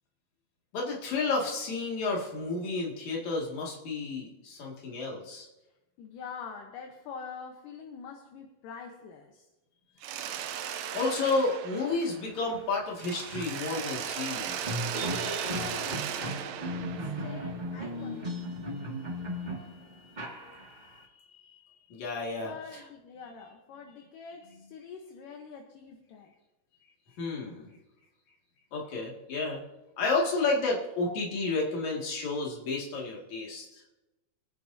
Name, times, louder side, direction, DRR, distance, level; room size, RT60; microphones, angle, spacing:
voice 1, 0.7-5.5 10.9-14.8 21.9-22.5 27.2-27.7 28.7-29.6 30.0-33.8, left 3 dB, 60° left, -2 dB, 3.4 m, -31 dB
voice 2, 6.0-9.5 15.4-18.5 22.4-26.3, left 6 dB, 75° left, 3 dB, 2.6 m, -45 dB
Mechanisms, 10.0-12.6 13.0-17.8, right 9 dB, 80° right, 1.7 m, -37 dB
sound 1, 12.5-12.6 12.9-21.0, equal, 30° right, 0.8 m, -36 dB
25.5 x 9.7 x 2.7 m, 1.0 s
omnidirectional pair, 3.9 m